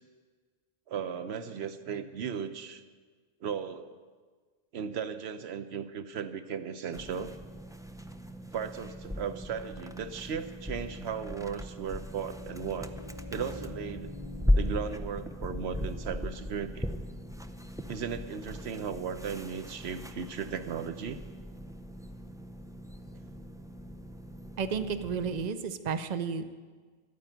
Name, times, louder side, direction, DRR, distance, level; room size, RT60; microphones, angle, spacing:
voice 1, 0.9-2.8 3.4-3.9 4.7-7.3 8.5-12.9 13.3-14.1 14.5-16.9 17.9-21.2, right 7 dB, 90° right, 10 dB, 1.1 m, -36 dB
sound 1, 6.9-25.5, left 1 dB, 5° right, 0.4 m, -37 dB
sound 2, 11.9-17.6, left 3 dB, 55° left, 1.6 m, -48 dB
voice 2, 24.6-26.5, right 6 dB, 45° right, 10 dB, 0.8 m, -32 dB
12.5 x 9.5 x 9.1 m, 1.5 s
omnidirectional pair, 1.0 m